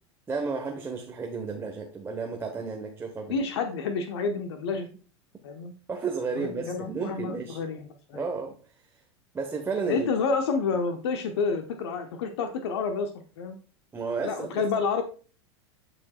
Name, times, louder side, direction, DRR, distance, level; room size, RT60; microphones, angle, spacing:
voice 1, 0.3-3.4 5.9-7.6 8.1-8.6 9.3-10.1 13.9-14.6, right 4 dB, 15° right, 1.1 m, -32 dB
voice 2, 3.3-4.9 5.4-5.7 6.4-7.8 8.1-8.3 9.9-13.6 14.2-15.0, left 5 dB, 65° left, 0.9 m, -29 dB
11.5 x 5.0 x 2.3 m
hypercardioid pair, 90°, 15 cm